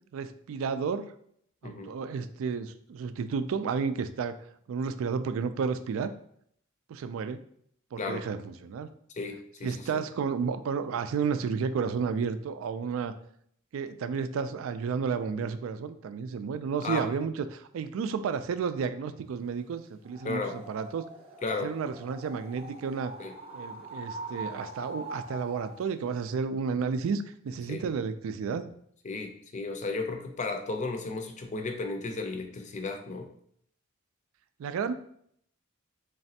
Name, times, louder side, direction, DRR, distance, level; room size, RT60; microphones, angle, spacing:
voice 1, 0.1-1.1 1.6-4.4 4.7-6.1 6.9-7.4 7.9-8.9 9.6-13.1 13.7-21.0 21.6-23.1 23.5-28.7 34.6-34.9, right 5 dB, 75° right, 11 dB, 0.3 m, -32 dB
voice 2, 9.2-9.8 16.8-17.1 20.2-20.5 21.4-21.7 23.2-23.3 27.7-27.8 29.0-33.3, left 3 dB, 35° left, 5 dB, 0.5 m, -34 dB
sound 1, 20.0-25.8, right 1 dB, 30° right, 0.6 m, -43 dB
4.0 x 3.2 x 2.7 m, 0.67 s
head